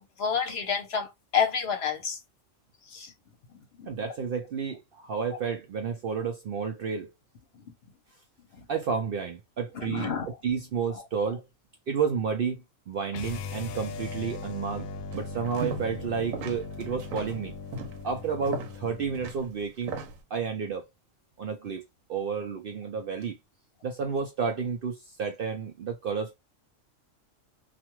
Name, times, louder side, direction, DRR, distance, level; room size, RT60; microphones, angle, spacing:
voice 1, 0.0-2.2 2.9-3.1 3.8-3.9 8.6-8.7 9.7-10.3, left 7 dB, 60° left, 0.9 m, -29 dB
voice 2, 3.9-7.1 8.7-11.5 11.9-17.6 18.0-19.9 20.3-20.8 21.4-23.4 23.8-26.3, right 6 dB, 65° right, 0.6 m, -31 dB
sound 1, 13.1-19.3, left 3 dB, 90° left, 1.0 m, -39 dB
sound 2, 15.1-16.1 16.3-20.2, right 3 dB, 85° right, 1.1 m, -38 dB
2.5 x 2.2 x 2.9 m
omnidirectional pair, 1.3 m